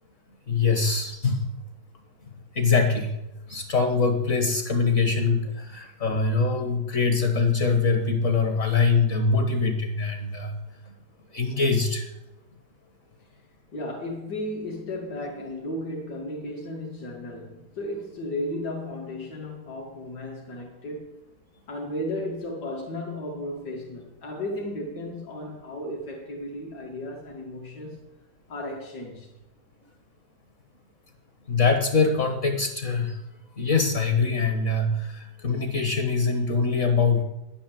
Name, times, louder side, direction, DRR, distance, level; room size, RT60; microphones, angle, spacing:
voice 1, 0.5-1.5 2.5-3.2 3.5-10.6 10.8-10.9 11.3-12.1 31.5-33.2 33.5-37.2, left 4 dB, 45° left, 1.6 m, -23 dB
voice 2, 13.7-21.1 21.7-28.0 28.5-29.3, left 1 dB, 70° left, 2.7 m, -34 dB
10.5 x 10.5 x 7.5 m
omnidirectional pair, 1.8 m